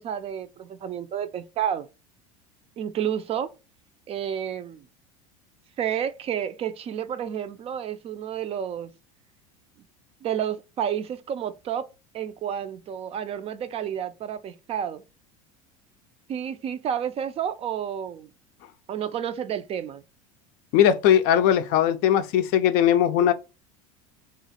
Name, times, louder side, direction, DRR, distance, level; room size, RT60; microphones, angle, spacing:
voice 1, 0.0-1.9 2.8-3.5 4.1-4.8 5.8-8.9 10.2-11.9 12.1-15.0 16.3-18.3 18.9-20.0, right 9 dB, 35° right, 0.3 m, -30 dB
voice 2, 20.7-23.3, left 10 dB, 60° left, 0.4 m, -19 dB
3.0 x 2.4 x 2.7 m
hypercardioid pair, 85°, 18 cm